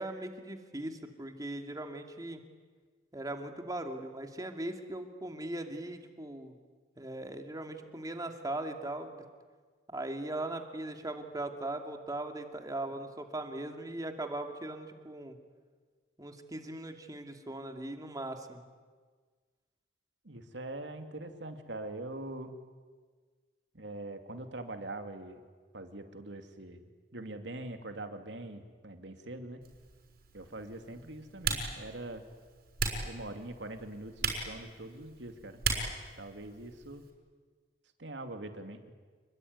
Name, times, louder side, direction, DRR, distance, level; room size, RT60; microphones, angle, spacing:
voice 1, 0.0-2.4 3.1-6.6 7.0-9.2 9.9-15.4 16.2-18.6, right 1 dB, 20° right, 5 dB, 2.5 m, -39 dB
voice 2, 20.2-22.6 23.7-25.4 25.7-29.6 30.3-32.2 33.0-35.6 36.2-37.0 38.0-38.9, right 2 dB, 90° right, 6 dB, 2.7 m, -43 dB
Typing, 29.6-37.1, right 4 dB, 60° right, 6.2 m, -38 dB
28.5 x 21.5 x 9.6 m, 1.5 s
head